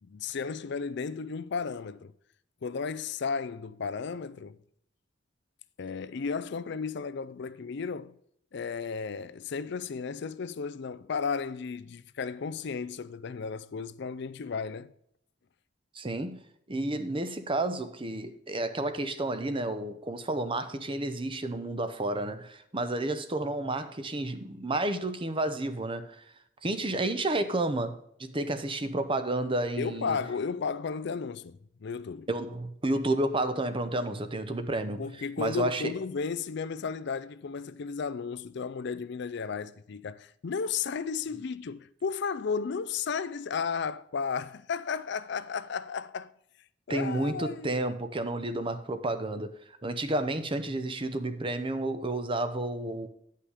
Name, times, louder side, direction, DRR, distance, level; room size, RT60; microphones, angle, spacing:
voice 1, 0.0-2.1 2.6-4.6 5.8-8.2 8.5-14.9 29.8-32.3 35.0-46.3 46.9-47.7, left 5 dB, 60° left, 0.4 m, -34 dB
voice 2, 15.9-16.4 16.7-26.2 26.6-30.2 32.3-35.0 35.4-35.9 46.9-49.5 49.8-53.1, right 2 dB, 25° right, 0.7 m, -31 dB
9.8 x 5.6 x 4.9 m
head